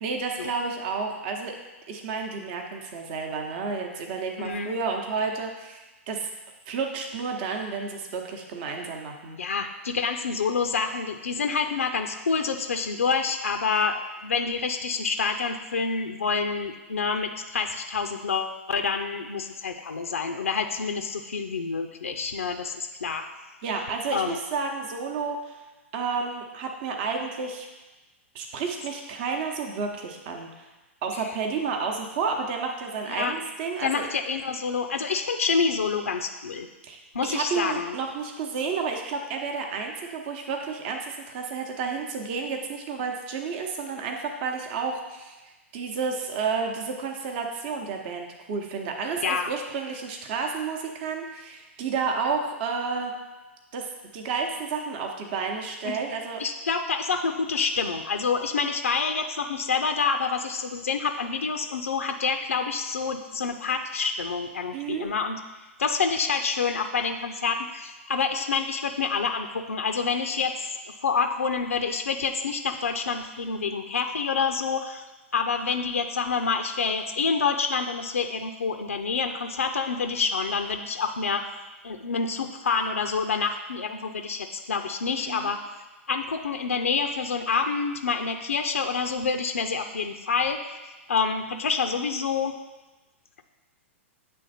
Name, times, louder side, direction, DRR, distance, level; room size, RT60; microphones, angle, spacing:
voice 1, 0.0-1.6 1.9-6.3 6.7-9.4 23.6-25.6 25.9-27.7 28.3-30.7 31.0-34.0 36.8-45.4 45.7-53.1 53.7-56.4 64.7-65.1 85.3-85.5, right 5 dB, 50° right, 2 dB, 0.8 m, -31 dB
voice 2, 4.4-4.7 9.4-23.3 24.1-24.4 31.2-31.3 33.1-33.3 33.8-36.7 37.1-37.9 49.2-49.5 55.8-55.9 56.4-65.4 65.8-70.7 71.0-75.0 75.3-81.4 81.8-85.6 86.1-90.6 91.1-92.6, left 5 dB, 85° left, 6 dB, 0.4 m, -27 dB
8.3 x 3.4 x 4.1 m, 1.2 s
hypercardioid pair, 110°, 7 cm